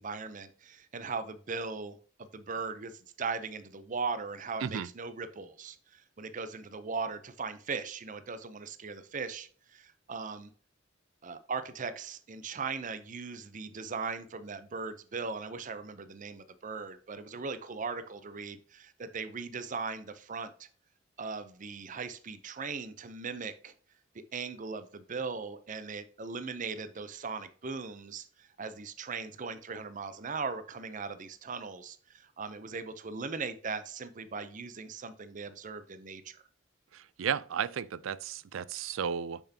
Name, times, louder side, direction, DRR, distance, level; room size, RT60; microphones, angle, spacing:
voice 1, 0.0-10.5 11.2-20.7 21.2-23.7 24.1-36.4, right 4 dB, 40° right, 0.6 m, -39 dB
voice 2, 36.9-39.4, right 7 dB, 85° right, 0.4 m, -34 dB
6.8 x 5.9 x 2.8 m
head